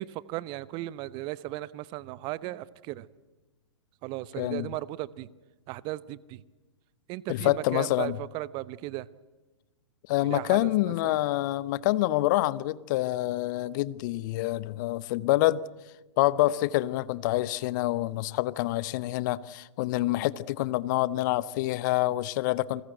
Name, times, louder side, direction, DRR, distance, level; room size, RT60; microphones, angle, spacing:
voice 1, 0.0-3.1 4.0-5.3 5.7-6.4 7.1-9.1 10.2-11.2, right 17 dB, 30° right, 0.8 m, -36 dB
voice 2, 4.4-4.7 7.3-8.2 10.1-15.6 16.2-22.8, left 16 dB, 40° left, 0.8 m, -27 dB
28.5 x 20.5 x 7.9 m
figure-of-eight pair, 115°, 16 cm